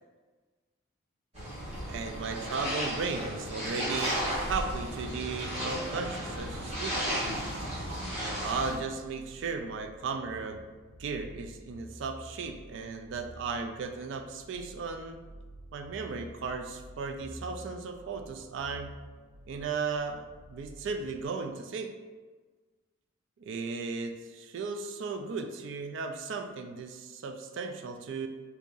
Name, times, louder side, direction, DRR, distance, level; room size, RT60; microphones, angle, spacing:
sound 1, 1.3-8.7, equal, 30° right, 1.5 m, -34 dB
voice 1, 1.9-7.1 8.4-10.7 11.0-15.3 15.7-18.9 19.5-22.0 23.4-28.3, right 4 dB, 60° right, 6 dB, 0.3 m, -36 dB
sound 2, 4.7-21.2, equal, 60° left, 0.5 m, -50 dB
2.8 x 2.5 x 3.7 m, 1.4 s
head